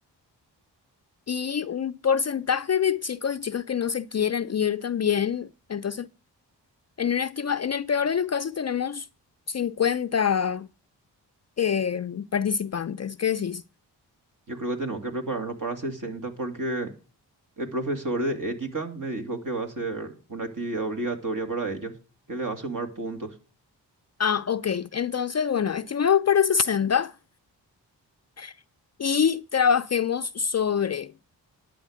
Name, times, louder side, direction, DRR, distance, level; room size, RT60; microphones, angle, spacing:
voice 1, 1.3-6.1 7.0-9.1 9.5-10.7 11.6-13.6 24.2-27.1 28.4-28.5 29.0-31.1, left 7 dB, 35° left, 0.5 m, -25 dB
voice 2, 14.5-16.9 17.6-21.9 22.3-23.3, right 2 dB, 45° right, 2.5 m, -31 dB
11.5 x 8.5 x 5.0 m
supercardioid pair, 40°, 44 cm